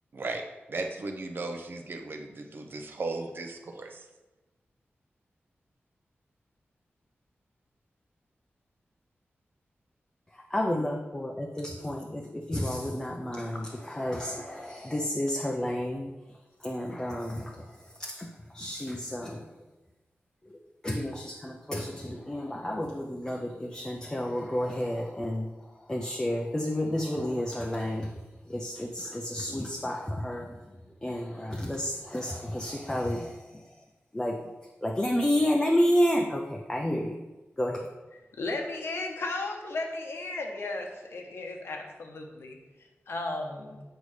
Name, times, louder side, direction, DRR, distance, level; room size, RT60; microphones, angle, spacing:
voice 1, 0.1-4.0, right 3 dB, 55° right, 4 dB, 0.7 m, -36 dB
voice 2, 10.3-16.1 16.6-19.5 20.5-20.6 20.8-28.1 28.5-30.6 31.0-33.7 34.1-34.4 34.8-37.2 37.6-37.9, left 1 dB, 15° left, 0 dB, 0.5 m, -31 dB
voice 3, 38.4-42.6 43.1-43.8, left 2 dB, 70° left, 2 dB, 1.0 m, -35 dB
8.0 x 5.4 x 3.2 m, 1.1 s
wide cardioid pair, 140°, 4 cm